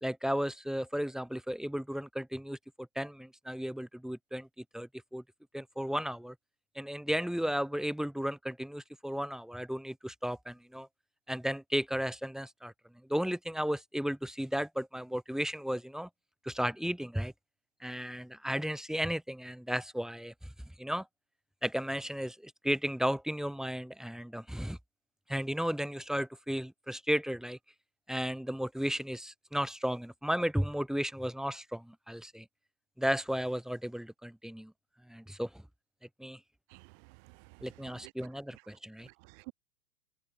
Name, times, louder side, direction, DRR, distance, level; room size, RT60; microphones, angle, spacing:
voice 1, 0.0-5.2 5.5-6.4 6.8-10.9 11.3-12.7 13.1-16.1 16.4-17.3 17.8-20.5 20.8-21.1 21.6-24.8 25.3-27.6 28.1-32.5 33.0-34.7 35.1-35.6 36.2-36.4 37.6-39.1, equal, ahead, 3.6 m, -34 dB
voice 2, 36.7-38.1 39.0-39.5, right 34 dB, 45° right, 2.9 m, -53 dB
figure-of-eight pair, 95°, 48 cm